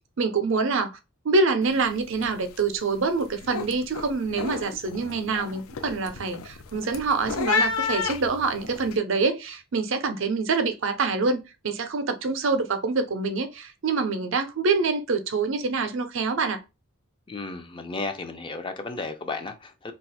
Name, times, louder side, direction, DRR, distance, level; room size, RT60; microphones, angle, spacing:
voice 1, 0.2-1.0 1.2-16.6, right 4 dB, 60° right, 0.5 m, -26 dB
sound 1, 1.6-1.9 2.1-2.6 3.0-8.9, left 5 dB, 85° left, 0.5 m, -31 dB
voice 2, 17.3-19.9, left 3 dB, 25° left, 0.4 m, -34 dB
2.4 x 2.3 x 4.0 m
head